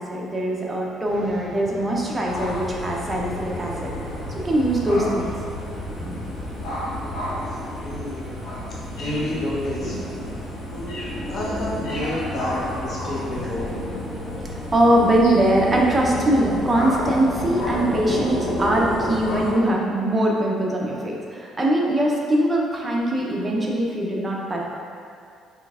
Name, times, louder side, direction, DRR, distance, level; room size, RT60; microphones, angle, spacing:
voice 1, 0.0-3.9 4.3-5.3 6.0-6.3 9.3-9.5 9.8-10.4 13.4-13.8 14.7-24.6, right 1 dB, 15° right, -2 dB, 0.6 m, -22 dB
sound 1, 1.0-7.7, equal, 5° left, 1.1 m, -43 dB
sound 2, 2.3-19.5, left 1 dB, 60° left, 1.0 m, -30 dB
voice 2, 7.5-8.3 8.9-9.9 10.7-11.0 11.3-13.7, left 1 dB, 35° left, -6 dB, 0.9 m, -30 dB
5.0 x 3.4 x 2.4 m, 2.3 s
cardioid pair, 155°, 0 cm